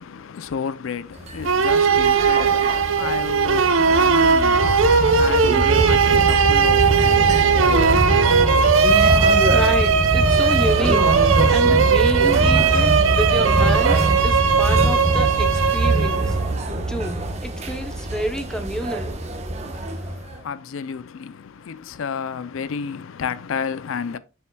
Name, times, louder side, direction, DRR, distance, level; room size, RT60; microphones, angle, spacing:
voice 1, 0.0-8.4 19.7-24.2, left 6 dB, 70° left, 0.4 m, -32 dB
sound 1, 1.2-20.4, right 2 dB, 30° right, 0.9 m, -23 dB
sound 2, 1.5-16.5, right 5 dB, 70° right, 0.6 m, -18 dB
voice 2, 9.5-16.4 16.9-19.1, equal, 5° left, 0.7 m, -29 dB
7.1 x 6.8 x 2.2 m
head